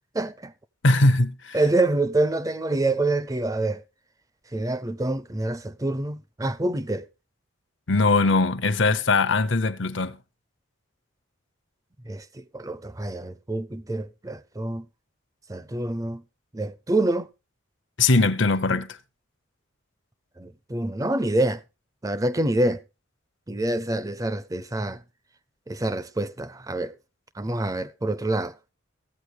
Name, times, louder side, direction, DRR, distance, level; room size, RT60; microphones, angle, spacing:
voice 1, 0.1-0.5 1.5-3.8 4.5-7.1 12.0-14.9 15.5-16.2 16.5-17.3 20.4-21.6 22.0-22.8 23.5-25.0 25.7-27.0 27.3-28.5, right 2 dB, 15° right, 0.6 m, -26 dB
voice 2, 0.8-1.6 7.9-10.2 18.0-19.0, left 3 dB, 65° left, 0.9 m, -21 dB
15.0 x 8.6 x 4.9 m
head